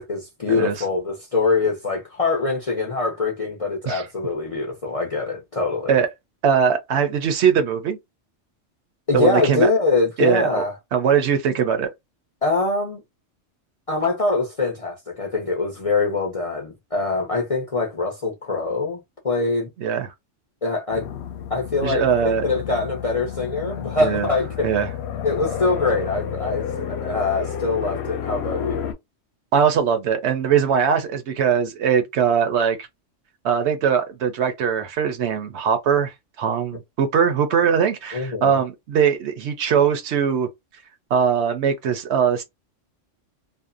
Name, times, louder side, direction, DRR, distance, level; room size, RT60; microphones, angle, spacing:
voice 1, 0.0-6.0 9.1-10.7 12.4-13.0 13.9-19.7 20.6-21.1 21.5-24.7 25.2-28.9 38.1-38.6, left 3 dB, 45° left, 0.5 m, -23 dB
voice 2, 6.4-8.0 9.1-9.7 10.2-10.5 10.9-11.9 19.8-20.1 21.8-22.4 24.0-24.3 24.6-24.9 29.5-32.9 33.4-40.5 41.1-42.4, right 7 dB, 70° right, 0.8 m, -21 dB
sound 1, 20.9-28.9, left 8 dB, 65° left, 0.8 m, -31 dB
2.6 x 2.0 x 2.4 m
omnidirectional pair, 1.3 m